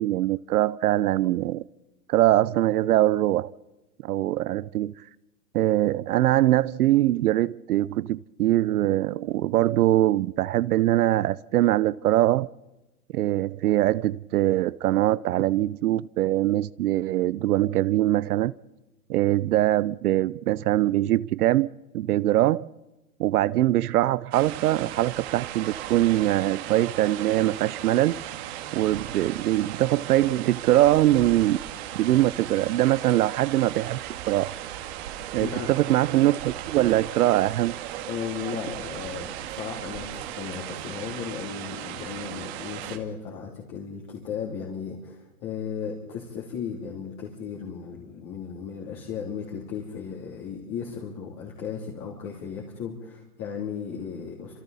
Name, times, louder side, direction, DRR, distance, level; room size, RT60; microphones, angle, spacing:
voice 1, 0.0-1.6 2.1-3.5 4.0-4.9 5.5-12.5 13.1-18.5 19.1-22.7 23.2-28.2 28.7-31.6 31.9-34.5 35.3-37.7, right 14 dB, 75° right, 0.7 m, -22 dB
sound 1, 24.3-43.0, right 12 dB, 45° right, 2.0 m, -37 dB
voice 2, 35.4-35.7 38.1-54.6, left 7 dB, 30° left, 3.1 m, -35 dB
29.5 x 27.0 x 4.2 m
supercardioid pair, 165°, 46 cm